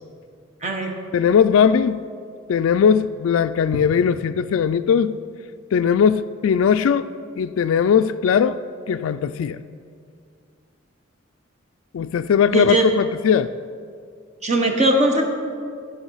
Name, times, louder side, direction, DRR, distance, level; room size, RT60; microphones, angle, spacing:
voice 1, 0.6-0.9 12.5-12.8 14.4-15.2, right 2 dB, 30° right, 1.2 m, -19 dB
voice 2, 1.1-2.1 2.5-5.2 5.7-7.1 7.4-9.6 11.9-13.5, left 7 dB, 75° left, 0.3 m, -19 dB
16.5 x 5.6 x 5.5 m
head